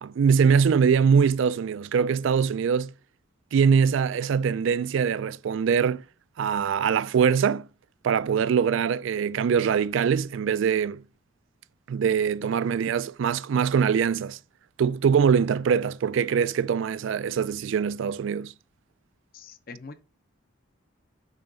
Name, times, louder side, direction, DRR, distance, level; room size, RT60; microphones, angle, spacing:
voice 1, 0.0-2.9 3.5-6.0 6.4-7.7 8.0-11.0 11.9-14.4 14.8-18.5, right 6 dB, 65° right, 0.3 m, -23 dB
voice 2, 19.3-20.0, left 4 dB, 45° left, 0.6 m, -43 dB
6.5 x 4.5 x 3.9 m
head